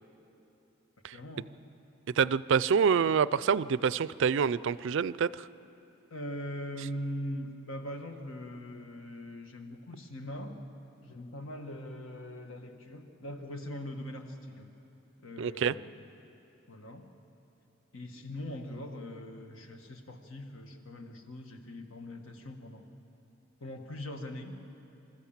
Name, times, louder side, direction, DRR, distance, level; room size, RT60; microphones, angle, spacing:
voice 1, 1.1-1.5 6.1-10.5 11.0-14.7 15.2-15.9 16.7-17.1 17.9-22.9 23.6-24.6, left 1 dB, 75° left, 5 dB, 1.7 m, -41 dB
voice 2, 2.2-5.5 15.4-15.7, right 6 dB, 65° right, 18 dB, 0.4 m, -26 dB
26.0 x 14.0 x 7.3 m, 2.9 s
head